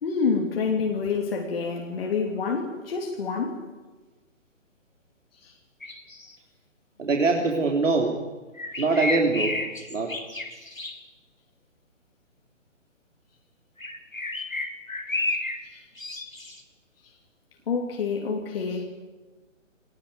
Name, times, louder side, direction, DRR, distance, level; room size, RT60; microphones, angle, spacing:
voice 1, 0.0-3.6 5.4-5.5 15.6-15.8 17.7-18.8, left 5 dB, 45° left, 3.2 m, -27 dB
sound 1, 5.8-6.4 8.6-11.0 13.8-15.6 16.0-16.6, left 2 dB, 90° left, 3.0 m, -32 dB
voice 2, 7.0-8.2 8.8-9.6 9.9-10.1, right 3 dB, 70° right, 3.5 m, -23 dB
22.0 x 20.0 x 9.5 m
figure-of-eight pair, 135°, 40 cm